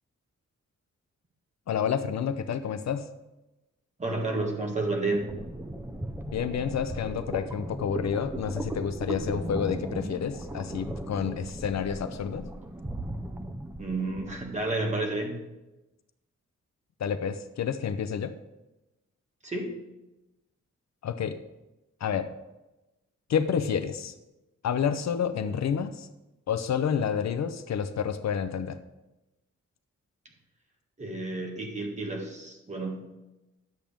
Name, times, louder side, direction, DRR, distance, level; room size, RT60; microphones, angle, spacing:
voice 1, 1.7-3.1 6.3-12.5 17.0-18.3 21.0-21.4 22.0-22.3 23.3-24.1 24.6-26.1 26.5-28.8, left 7 dB, 65° left, 9 dB, 0.6 m, -29 dB
voice 2, 4.0-5.3 13.8-15.3 19.4-19.7 31.0-33.0, right 2 dB, 25° right, 1 dB, 1.5 m, -30 dB
sound 1, 5.1-14.5, right 1 dB, 10° right, 0.5 m, -37 dB
10.5 x 7.3 x 3.5 m, 1.0 s
wide cardioid pair, 180°, 29 cm